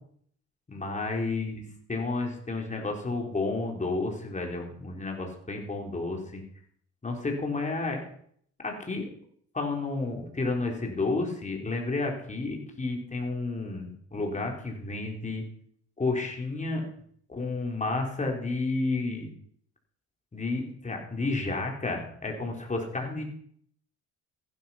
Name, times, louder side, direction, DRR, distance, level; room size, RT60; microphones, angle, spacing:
voice 1, 0.7-1.6 1.9-6.4 7.0-8.0 8.6-9.1 9.5-15.4 16.0-16.9 17.3-19.3 20.3-23.2, left 3 dB, 25° left, 1 dB, 3.9 m, -31 dB
15.0 x 12.0 x 5.7 m, 0.63 s
cardioid pair, 90°, 30 cm